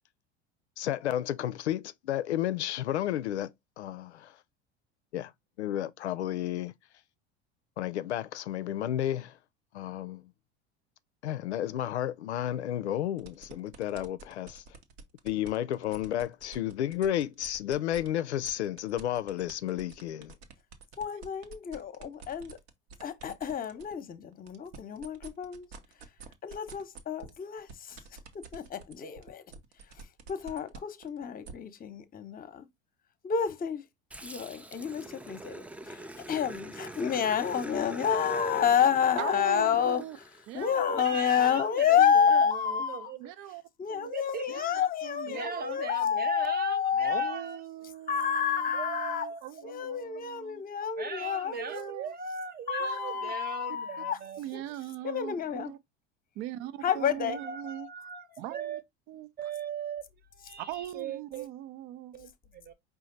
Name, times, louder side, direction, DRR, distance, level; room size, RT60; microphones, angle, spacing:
voice 1, 0.8-4.4 5.1-5.3 5.6-6.7 7.8-9.4 9.7-10.2 11.2-14.6 15.2-20.3, left 12 dB, 85° left, 0.5 m, -32 dB
sound 1, 13.2-18.1 18.4-23.9 24.3-31.5, right 5 dB, 70° right, 1.1 m, -48 dB
voice 2, 21.0-22.6 23.0-25.7 26.4-28.0 28.3-29.4 30.0-32.7 33.2-33.8 34.2-40.0 40.5-43.1 43.8-47.4 48.1-49.3 49.6-51.9 52.7-54.2 54.5-54.6 55.0-55.7 56.8-57.4 58.1-58.2, left 8 dB, 25° left, 0.9 m, -29 dB
Growling, 34.1-40.8, right 1 dB, 5° right, 0.4 m, -44 dB
voice 3, 39.2-40.2 40.5-40.8 41.7-42.1 43.2-43.6 43.9-44.1 44.5-45.7 46.9-50.6 51.7-52.1 52.8-53.3 54.4-55.8 56.4-57.9 58.4-58.8 59.1-59.3 60.6-62.1, right 13 dB, 55° right, 0.6 m, -41 dB
voice 4, 40.9-43.3 44.1-44.5 45.3-47.6 48.7-49.4 51.0-54.4 57.3-58.8 59.4-61.5 62.1-62.7, right 6 dB, 30° right, 1.0 m, -39 dB
5.0 x 2.6 x 3.8 m
hypercardioid pair, 80°, 33 cm